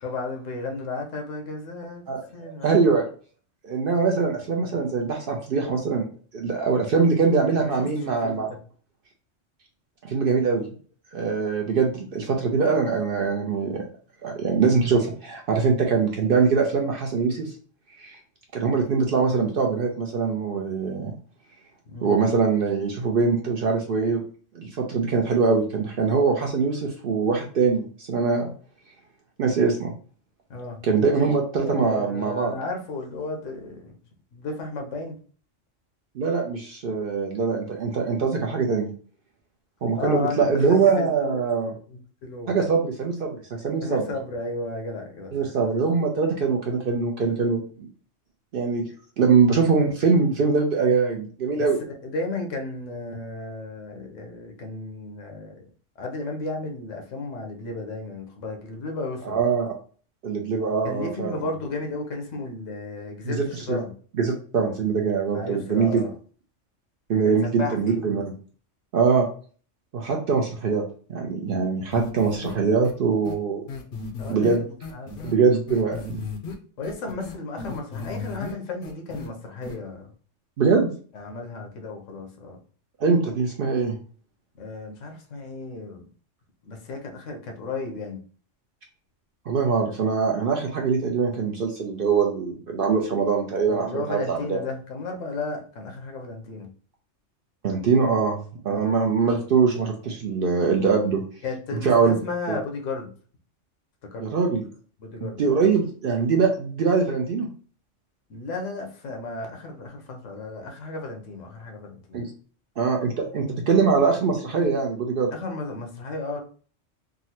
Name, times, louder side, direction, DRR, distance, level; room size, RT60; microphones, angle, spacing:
voice 1, 0.0-2.0 2.3-2.8 7.6-8.4 21.9-22.2 30.5-30.8 31.5-34.0 34.3-35.2 39.9-41.4 41.9-42.6 43.8-45.5 51.6-51.7 52.0-55.7 56.0-59.4 60.8-63.9 65.3-66.1 67.2-68.0 74.2-75.4 76.8-80.1 81.1-82.6 84.6-86.1 86.6-88.2 93.6-96.7 98.7-98.9 101.4-103.1 104.0-104.3 105.0-105.5 108.3-112.2 115.3-116.4, left 3 dB, 80° left, 3 dB, 1.1 m, -34 dB
voice 2, 2.6-3.1 3.6-6.1 6.3-8.5 10.0-10.7 11.1-13.8 14.2-17.5 18.0-18.2 18.5-21.1 22.0-24.2 24.5-28.5 29.4-29.9 30.8-32.5 36.2-38.9 39.8-41.7 42.5-44.1 45.3-47.9 48.5-48.9 49.2-51.8 59.3-59.7 60.2-61.4 63.2-63.8 64.2-66.0 67.1-68.2 68.9-69.3 69.9-70.8 71.1-73.7 74.3-74.6 75.2-76.2 80.6-80.9 83.0-84.0 89.5-94.6 97.6-98.4 98.6-101.2 101.8-102.2 102.5-102.6 104.2-104.6 105.2-107.5 112.1-112.3 112.8-115.3, right 5 dB, 60° right, 1 dB, 0.6 m, -23 dB
sound 1, 71.9-72.5 72.8-72.9 73.2-73.3 73.7-75.3 75.7-76.5 76.8-78.5 78.8-79.3 79.6-79.7, left 4 dB, 60° left, 0.6 m, -34 dB
3.6 x 2.1 x 2.8 m, 0.42 s
omnidirectional pair, 1.3 m